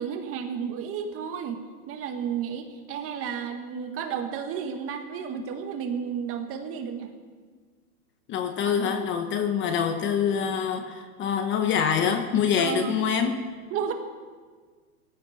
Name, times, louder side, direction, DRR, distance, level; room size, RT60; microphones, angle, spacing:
voice 1, 0.0-7.1 8.6-8.9 12.6-13.0 13.7-13.9, right 7 dB, 30° right, 6 dB, 1.7 m, -32 dB
voice 2, 8.3-13.5, left 7 dB, 25° left, 7 dB, 1.1 m, -25 dB
18.0 x 14.5 x 4.3 m, 1.5 s
hypercardioid pair, 130°, 45 cm